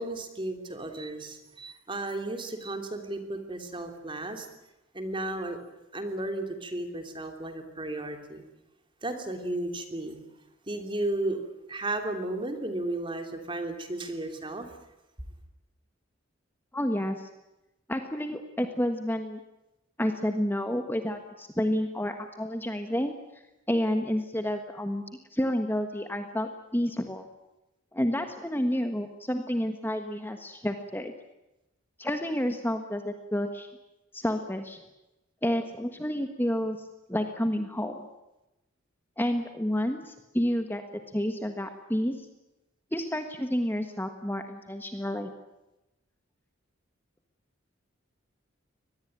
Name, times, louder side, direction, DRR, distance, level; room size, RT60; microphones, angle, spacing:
voice 1, 0.0-4.5 4.9-5.6 5.9-8.4 9.0-10.2 10.7-11.4 11.7-14.7, right 2 dB, 25° right, 6 dB, 3.2 m, -34 dB
voice 2, 16.7-17.3 17.9-19.4 20.0-23.1 23.7-25.0 25.3-27.3 27.9-31.1 32.0-33.7 34.1-34.8 35.4-38.1 39.2-40.8 41.1-42.3 42.9-45.3, equal, 10° left, 6 dB, 1.4 m, -30 dB
24.5 x 20.0 x 9.0 m, 0.96 s
head